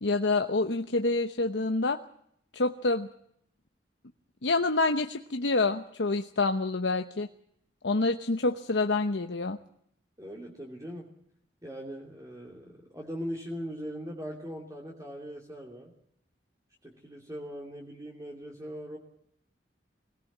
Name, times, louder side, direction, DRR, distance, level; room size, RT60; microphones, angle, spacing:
voice 1, 0.0-2.0 2.5-3.1 4.4-7.3 7.8-9.6, left 3 dB, 80° left, 6 dB, 1.0 m, -27 dB
voice 2, 10.2-11.1 11.6-15.9 16.8-19.0, equal, 20° right, 0 dB, 2.8 m, -40 dB
22.5 x 18.0 x 7.4 m, 0.71 s
head